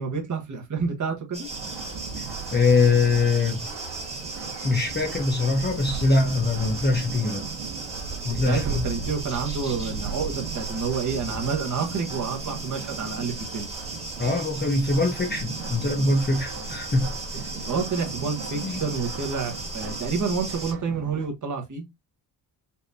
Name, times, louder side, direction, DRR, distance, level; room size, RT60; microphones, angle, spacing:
voice 1, 0.0-1.5 8.2-13.7 17.5-21.8, right 5 dB, 40° right, 1.3 m, -29 dB
sound 1, 1.3-20.7, right 2 dB, 15° right, 1.8 m, -36 dB
sound 2, 1.5-21.3, right 5 dB, 75° right, 1.9 m, -37 dB
voice 2, 2.5-3.7 4.6-7.5 8.2-8.9 14.2-17.1 18.6-18.8, left 3 dB, 20° left, 0.9 m, -23 dB
5.6 x 2.9 x 2.8 m
wide cardioid pair, 150°, 46 cm